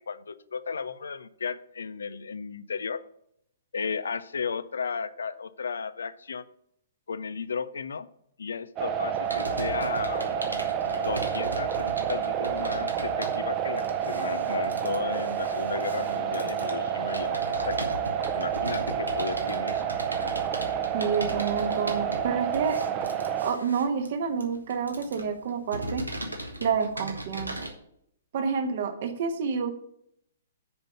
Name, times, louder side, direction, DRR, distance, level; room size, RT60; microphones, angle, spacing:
voice 1, 0.1-3.0 3.7-6.4 7.1-8.1 8.4-10.3 10.8-17.8 18.3-19.9, left 5 dB, 65° left, 15 dB, 0.5 m, -34 dB
sound 1, 8.8-23.5, right 8 dB, 25° right, 0.8 m, -29 dB
Computer keyboard, 9.2-27.7, right 1 dB, 85° right, 1.3 m, -38 dB
voice 2, 20.9-22.8 23.4-26.0 26.6-27.7 28.3-29.7, right 6 dB, 45° right, 6 dB, 1.3 m, -29 dB
6.9 x 5.2 x 6.8 m, 0.73 s
figure-of-eight pair, 115°, 0 cm